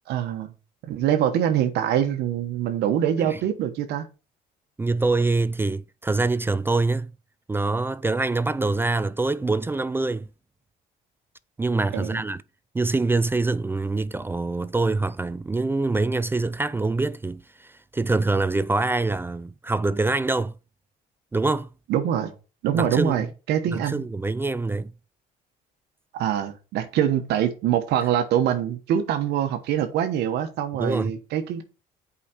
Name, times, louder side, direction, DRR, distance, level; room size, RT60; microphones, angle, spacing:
voice 1, 0.1-0.5 0.8-4.1 11.9-12.2 21.9-22.3 22.6-24.1 26.1-31.6, right 10 dB, 80° right, 1.2 m, -24 dB
voice 2, 4.8-7.1 7.5-10.3 11.6-12.4 12.7-20.5 21.3-21.7 22.7-23.3 23.7-24.9 30.8-31.1, right 3 dB, 15° right, 0.4 m, -25 dB
8.5 x 5.0 x 5.1 m
cardioid pair, 110°, 17 cm